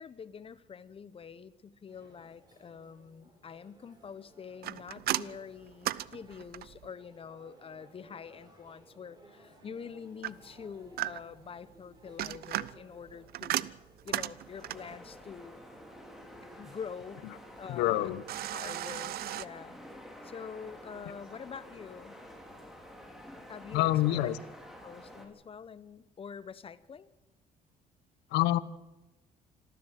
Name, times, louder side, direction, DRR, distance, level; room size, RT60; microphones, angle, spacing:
voice 1, 0.0-13.7 14.0-15.6 16.6-17.2 17.6-18.1 18.5-19.8 20.2-22.2 23.5-24.3 24.8-27.1, left 6 dB, 35° left, 16 dB, 1.1 m, -46 dB
sound 1, 1.9-17.7, right 1 dB, 25° right, 6.5 m, -60 dB
sound 2, 4.6-6.9 10.2-11.5 12.0-15.0 18.3-19.5, right 14 dB, 65° right, 0.7 m, -36 dB
sound 3, 14.2-25.3, equal, ahead, 4.1 m, -50 dB
voice 2, 17.7-18.2 23.7-24.4 28.3-28.6, left 14 dB, 85° left, 16 dB, 1.1 m, -26 dB
26.5 x 14.0 x 7.6 m, 1.0 s
cardioid pair, 110°, 17 cm